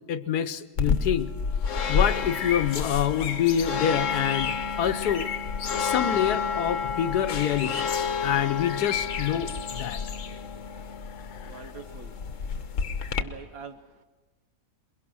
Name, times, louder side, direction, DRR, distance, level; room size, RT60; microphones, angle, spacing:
voice 1, 0.1-1.3 1.9-5.3 5.8-7.9 8.2-10.0 11.1-11.6, left 9 dB, 80° left, 12 dB, 1.4 m, -27 dB
sound 1, 0.8-13.2, left 6 dB, 55° left, 1.3 m, -29 dB
voice 2, 11.4-12.2 13.2-14.0, right 5 dB, 65° right, 8 dB, 1.6 m, -44 dB
23.0 x 22.5 x 6.2 m, 1.2 s
omnidirectional pair, 1.7 m